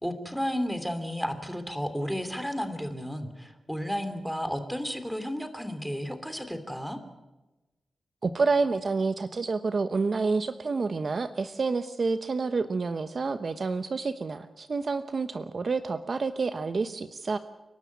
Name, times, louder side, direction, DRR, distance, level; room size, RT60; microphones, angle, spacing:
voice 1, 0.0-7.0, equal, ahead, 8 dB, 2.9 m, -32 dB
voice 2, 8.2-17.4, right 4 dB, 45° right, 10 dB, 1.0 m, -28 dB
29.5 x 12.5 x 9.5 m, 1.1 s
wide cardioid pair, 100°, 0 cm